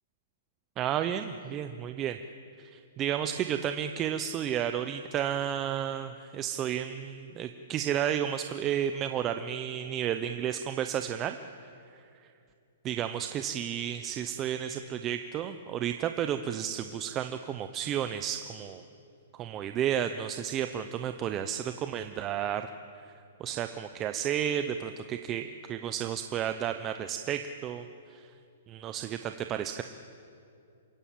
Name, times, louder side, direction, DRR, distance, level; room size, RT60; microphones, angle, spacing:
voice 1, 0.8-2.2 2.6-11.4 11.6-11.7 12.8-18.8 19.3-22.7 23.4-27.8 28.1-28.3 28.7-29.8, right 9 dB, 20° right, 8 dB, 0.6 m, -32 dB
28.0 x 14.5 x 8.7 m, 2.5 s
hypercardioid pair, 160°, 0 cm